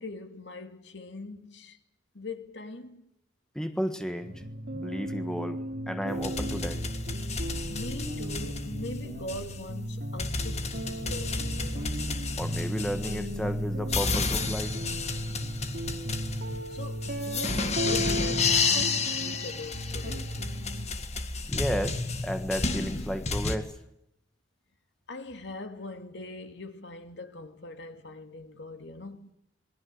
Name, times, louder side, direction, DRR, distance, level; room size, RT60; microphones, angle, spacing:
voice 1, 0.0-1.8 2.1-3.0 7.7-12.0 16.7-20.4 25.1-29.3, left 2 dB, 70° left, 2.5 m, -41 dB
voice 2, 3.5-4.4 4.7-5.6 5.9-6.8 12.4-14.7 21.5-23.7, equal, 5° left, 1.5 m, -33 dB
sound 1, 4.2-20.9, equal, 55° right, 3.8 m, -35 dB
sound 2, 6.1-23.6, left 4 dB, 35° left, 2.0 m, -32 dB
27.0 x 21.5 x 7.7 m
head